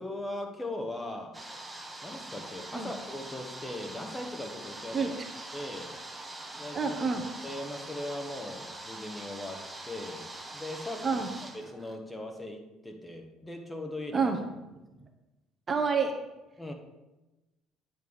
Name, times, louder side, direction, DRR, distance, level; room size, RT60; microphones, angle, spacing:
voice 1, 0.0-1.4 2.0-5.2 5.5-6.0 6.5-7.0 7.4-10.3 10.5-11.2 11.5-14.3 16.6-16.7, left 1 dB, 10° left, 3 dB, 1.2 m, -39 dB
sound 1, 1.3-12.0, right 2 dB, 10° right, 1.0 m, -43 dB
voice 2, 6.7-7.2 11.0-11.3 14.1-14.4 15.7-16.1, right 5 dB, 30° right, 4 dB, 0.8 m, -28 dB
9.2 x 3.4 x 6.3 m, 1.0 s
supercardioid pair, 90°, 0 cm